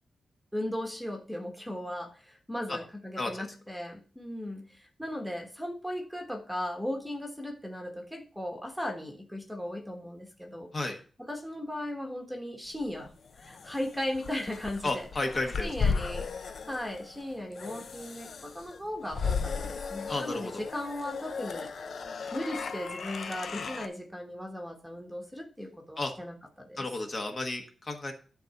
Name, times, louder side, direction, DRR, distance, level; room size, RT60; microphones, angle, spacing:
voice 1, 0.5-10.7 11.2-15.1 15.6-21.7 22.3-26.9, left 1 dB, ahead, 2 dB, 1.4 m, -37 dB
sound 1, 12.8-23.9, left 5 dB, 60° left, 0.8 m, -36 dB
voice 2, 14.8-15.7 20.1-20.6 26.0-26.1 26.8-28.1, left 2 dB, 35° left, 3 dB, 1.4 m, -32 dB
11.0 x 4.0 x 5.8 m, 0.39 s
wide cardioid pair, 160°, 0 cm